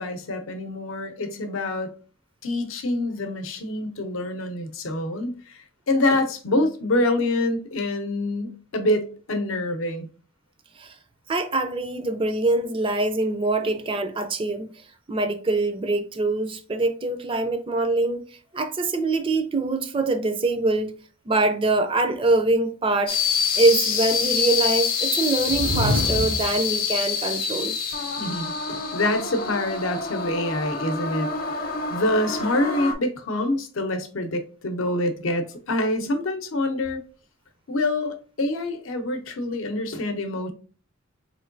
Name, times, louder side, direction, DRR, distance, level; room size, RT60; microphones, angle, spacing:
voice 1, 0.0-1.9 2.4-5.6 5.9-10.1 28.2-37.0 37.7-40.5, left 1 dB, 75° left, 0.7 m, -26 dB
voice 2, 11.3-14.7 15.1-18.2 18.5-21.0 21.3-23.2 23.6-27.7, right 2 dB, 25° right, 0.4 m, -24 dB
sound 1, 23.1-32.9, left 5 dB, 45° left, 0.7 m, -26 dB
sound 2, 25.4-26.6, left 1 dB, 80° right, 1.6 m, -25 dB
4.4 x 3.1 x 2.5 m
head